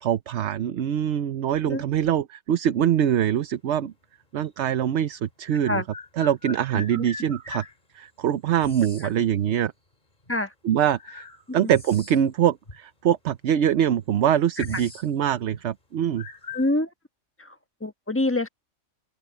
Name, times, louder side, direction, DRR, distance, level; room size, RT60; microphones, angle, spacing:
voice 1, 0.0-3.9 4.3-5.8 6.2-7.6 7.9-9.7 10.6-11.2 11.5-16.3, right 10 dB, 65° right, 1.0 m, -23 dB
sound 1, 4.4-4.5 5.6-7.7 8.6-9.1 10.2-10.3 11.0-12.4 12.7-12.8 13.6-13.7 14.0-15.1 15.4-15.6 16.2-16.7, left 3 dB, 35° left, 2.7 m, -40 dB
voice 2, 16.5-16.9 17.8-18.5, left 2 dB, 10° left, 1.2 m, -25 dB
open air
omnidirectional pair, 1.3 m